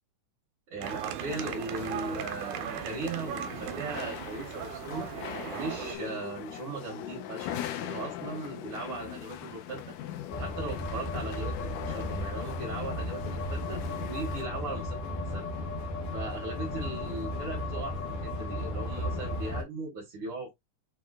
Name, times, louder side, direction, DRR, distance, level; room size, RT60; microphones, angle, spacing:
voice 1, 0.7-5.1 5.5-7.5 7.8-9.9 10.4-15.0 15.3-15.5 16.1-20.5, right 3 dB, 50° right, 2.2 m, -38 dB
sound 1, 0.8-6.0, right 10 dB, 85° right, 2.2 m, -38 dB
sound 2, 1.3-14.4, left 11 dB, 90° left, 2.3 m, -41 dB
sound 3, 10.3-19.6, left 1 dB, 60° left, 2.4 m, -34 dB
6.6 x 3.0 x 2.4 m
omnidirectional pair, 3.6 m